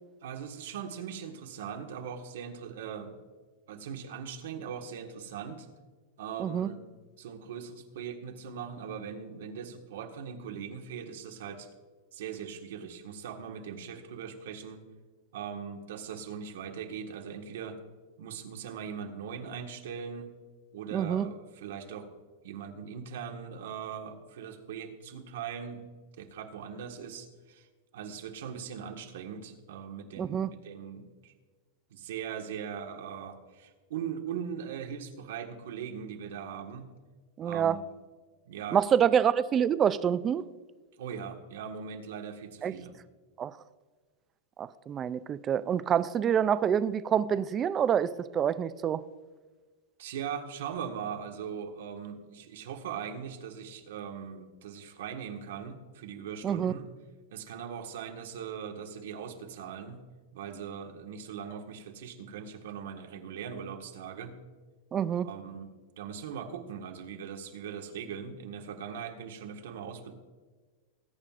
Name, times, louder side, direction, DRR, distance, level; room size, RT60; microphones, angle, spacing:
voice 1, 0.2-3.1 3.7-5.7 6.2-6.8 7.2-11.7 12.1-14.8 15.3-17.8 18.2-20.3 20.7-22.1 22.4-25.8 26.2-27.7 27.9-31.3 31.9-36.9 37.4-37.9 38.4-38.8 41.0-42.9 50.0-56.9 57.3-60.0 60.3-64.4 65.2-65.7 66.0-70.1, right 7 dB, 75° right, 4 dB, 1.5 m, -40 dB
voice 2, 6.4-6.7 20.9-21.3 30.2-30.5 37.4-37.8 38.7-40.4 42.6-42.7 43.4-43.5 44.6-49.0 56.4-56.7 64.9-65.3, right 8 dB, 20° right, 15 dB, 0.3 m, -27 dB
20.0 x 9.0 x 2.5 m, 1.4 s
supercardioid pair, 165°, 0 cm